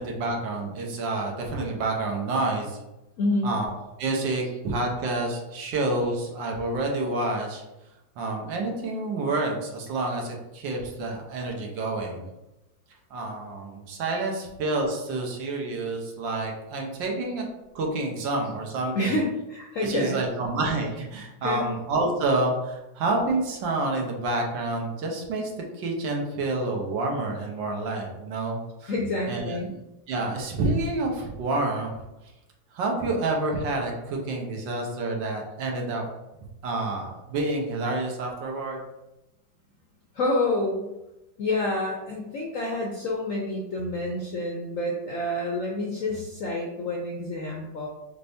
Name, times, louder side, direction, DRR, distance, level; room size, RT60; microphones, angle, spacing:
voice 1, 0.0-2.8 3.4-3.7 4.0-7.6 8.2-12.3 13.1-17.4 17.7-19.1 19.8-25.5 25.8-28.9 29.3-29.6 30.1-31.9 32.7-36.0 36.6-38.8, right 2 dB, 75° right, 1 dB, 1.6 m, -28 dB
voice 2, 3.2-3.5 18.9-20.2 21.4-21.6 28.9-29.7 40.1-40.9 41.4-47.9, left 2 dB, 70° left, -1 dB, 0.7 m, -28 dB
5.7 x 3.4 x 2.7 m, 0.97 s
omnidirectional pair, 2.1 m